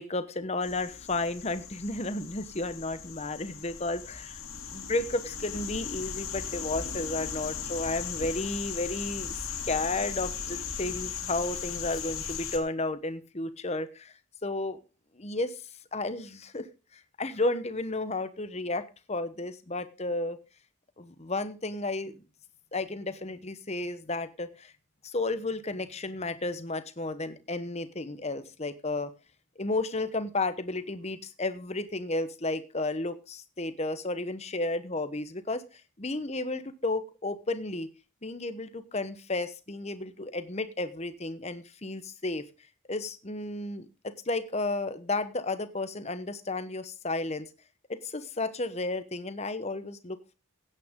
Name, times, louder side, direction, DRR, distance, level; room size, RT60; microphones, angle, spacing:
voice 1, 0.0-4.4 4.7-9.4 9.6-14.8 15.1-15.6 15.9-16.7 16.9-18.8 19.1-20.4 21.0-22.1 22.7-24.7 25.0-29.1 29.6-35.6 36.0-37.9 38.2-42.4 42.9-47.5 47.9-50.3, left 2 dB, 30° left, 12 dB, 1.0 m, -33 dB
sound 1, 0.6-12.6, left 7 dB, 65° left, 2.6 m, -37 dB
16.0 x 9.2 x 3.7 m, 0.31 s
head